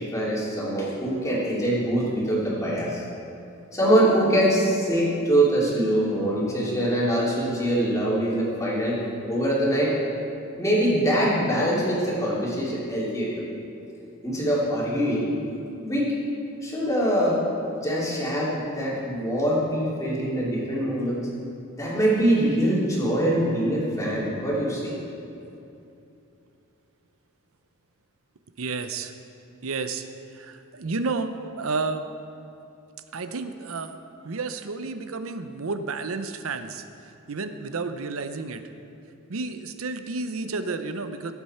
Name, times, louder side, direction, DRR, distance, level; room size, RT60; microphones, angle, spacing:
voice 1, 0.0-3.0 3.7-9.0 9.3-9.9 10.6-13.4 14.2-15.3 15.8-16.1 16.6-17.4 17.8-21.2 21.8-24.9, right 1 dB, 15° left, -6 dB, 3.0 m, -23 dB
voice 2, 28.6-29.1 29.6-30.0 30.3-31.3 31.6-32.1 33.1-34.0 34.2-36.8 37.3-38.6 39.3-41.3, right 3 dB, 70° right, 9 dB, 0.7 m, -31 dB
17.5 x 8.1 x 4.4 m, 2.7 s
head